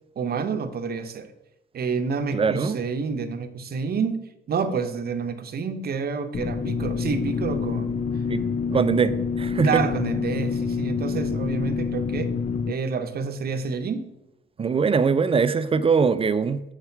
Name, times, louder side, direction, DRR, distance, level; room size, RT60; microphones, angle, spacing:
voice 1, 0.2-1.3 1.7-4.2 4.5-8.0 9.6-12.4 12.7-14.1, right 5 dB, 50° right, 9 dB, 0.8 m, -28 dB
voice 2, 2.3-2.8 8.3-8.4 8.7-9.8 14.6-16.7, right 5 dB, 30° right, 13 dB, 0.5 m, -22 dB
sound 1, 6.3-12.7, left 5 dB, 40° left, 0.4 m, -27 dB
7.0 x 4.8 x 4.5 m, 0.92 s
cardioid pair, 90°, 20 cm